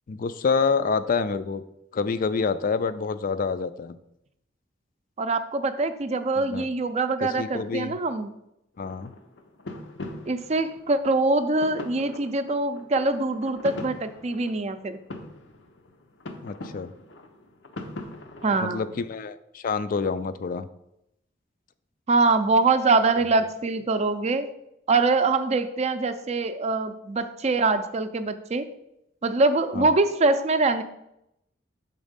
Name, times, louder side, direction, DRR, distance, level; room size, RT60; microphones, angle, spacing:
voice 1, 0.1-1.6 1.9-4.0 6.4-6.7 7.4-8.0 8.8-9.1 16.4-16.9 18.6-20.7 29.7-29.9, left 5 dB, 50° left, 13 dB, 0.4 m, -27 dB
voice 2, 5.2-8.3 10.3-15.0 18.4-18.9 22.1-24.5 24.9-28.7 29.2-30.8, right 3 dB, 35° right, 10 dB, 0.5 m, -24 dB
sound 1, 8.8-18.6, left 2 dB, 75° left, 0.8 m, -42 dB
6.2 x 4.1 x 5.1 m, 0.82 s
head